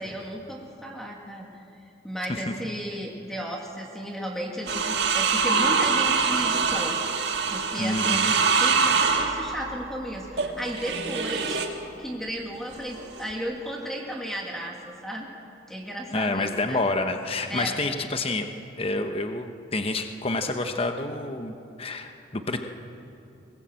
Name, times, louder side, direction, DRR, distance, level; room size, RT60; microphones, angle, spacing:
voice 1, 0.0-1.6 2.0-7.0 7.5-11.6 12.0-15.3 15.7-16.8 17.5-17.8, equal, ahead, 0 dB, 2.0 m, -34 dB
sound 1, 4.7-11.8 12.7-13.3, right 5 dB, 60° right, 1.8 m, -24 dB
voice 2, 7.8-8.3 16.1-18.5 18.8-22.6, left 2 dB, 30° left, 6 dB, 1.0 m, -28 dB
22.5 x 19.5 x 7.7 m, 2.7 s
head